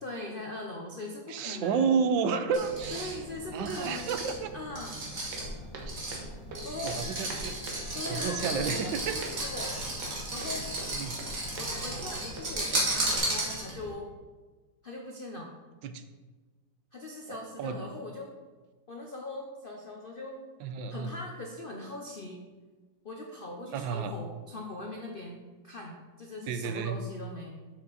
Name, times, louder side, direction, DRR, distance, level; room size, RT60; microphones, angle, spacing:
voice 1, 0.0-1.9 2.9-4.2 4.5-5.0 6.6-7.0 7.9-9.8 10.3-10.7 11.6-14.1 14.8-15.5 16.9-18.4 18.9-20.4 20.9-22.4 23.0-27.5, left 2 dB, 65° left, 0 dB, 0.5 m, -41 dB
voice 2, 1.3-3.1 3.5-4.5 5.8-5.9 6.8-7.6 8.1-9.2 10.9-11.2 15.8-16.0 17.3-17.8 20.6-21.1 23.7-24.1 26.5-27.0, right 6 dB, 85° right, 9 dB, 1.3 m, -31 dB
sound 1, 2.5-13.9, right 1 dB, 45° right, 2.0 m, -34 dB
Walk footsteps, 5.3-13.2, right 2 dB, 65° right, 1.7 m, -44 dB
7.1 x 6.1 x 4.0 m, 1.3 s
omnidirectional pair, 2.1 m